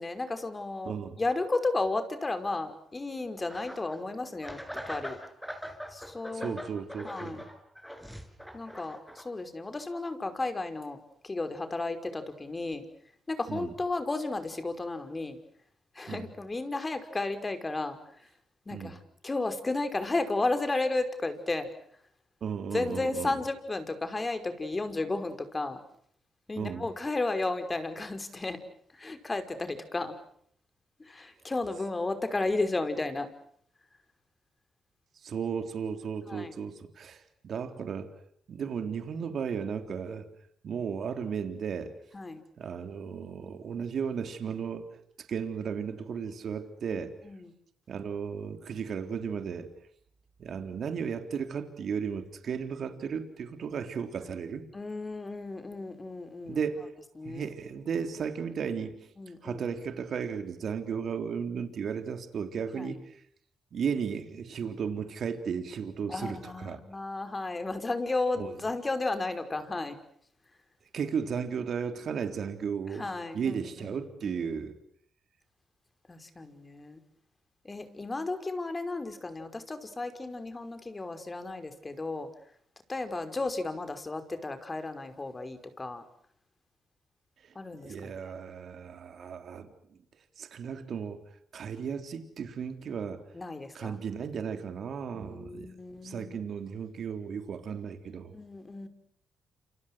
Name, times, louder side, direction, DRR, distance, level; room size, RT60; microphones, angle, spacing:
voice 1, 0.0-5.2 5.9-6.6 7.0-7.4 8.5-11.0 11.2-12.9 13.3-15.4 15.9-18.3 18.7-21.7 22.7-25.8 26.5-28.6 28.9-30.1 31.0-33.3 36.3-36.5 42.1-42.4 46.9-47.5 54.7-56.6 57.2-57.5 59.2-59.6 62.7-63.0 66.1-70.0 72.9-73.9 74.2-74.4 76.1-77.0 77.6-82.3 82.9-86.0 87.6-88.2 93.3-94.0 95.1-96.5 98.3-98.9, left 2 dB, 30° left, 9 dB, 5.5 m, -33 dB
voice 2, 0.9-1.2 6.3-7.5 13.5-13.7 16.1-16.3 18.7-19.0 22.4-23.4 26.6-26.9 35.2-38.1 38.5-40.3 40.6-41.9 42.6-44.9 45.3-47.1 47.9-49.7 50.4-54.7 56.5-56.9 57.2-58.9 59.4-63.2 63.7-66.8 68.4-68.6 70.9-73.1 73.3-74.8 87.4-87.6 87.8-90.0 90.4-91.2 91.5-93.2 93.7-95.7 96.0-98.3, right 6 dB, 65° right, 8 dB, 3.6 m, -35 dB
sound 1, 3.5-4.0 4.4-9.2, equal, 5° left, 6.8 m, -42 dB
29.0 x 27.5 x 6.4 m, 0.64 s
supercardioid pair, 60°, 0 cm